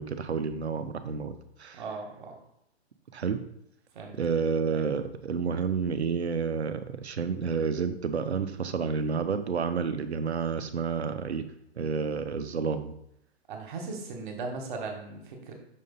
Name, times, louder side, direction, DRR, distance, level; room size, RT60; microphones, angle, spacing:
voice 1, 0.0-1.8 3.1-3.4 4.2-11.5 11.8-12.9, right 5 dB, 75° right, 10 dB, 0.8 m, -30 dB
voice 2, 1.7-2.4 3.9-4.2 4.7-4.8 13.5-15.5, right 4 dB, 45° right, 2 dB, 1.6 m, -38 dB
6.3 x 3.8 x 4.0 m, 0.77 s
figure-of-eight pair, 120°, 33 cm